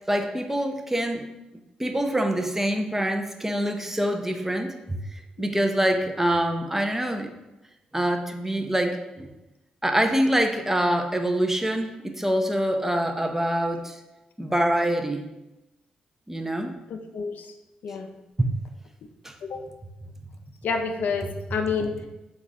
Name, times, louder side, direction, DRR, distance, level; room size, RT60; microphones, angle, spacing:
voice 1, 0.1-1.3 1.8-7.3 7.9-9.3 9.8-14.0 14.4-15.3 16.3-16.7 18.4-18.5 19.2-19.3, right 1 dB, 10° right, 5 dB, 0.5 m, -25 dB
voice 2, 16.9-17.3 17.8-18.1 19.4-19.6 20.6-22.1, left 5 dB, 65° left, 5 dB, 0.4 m, -28 dB
3.9 x 2.4 x 3.9 m, 0.99 s
hypercardioid pair, 45°, 3 cm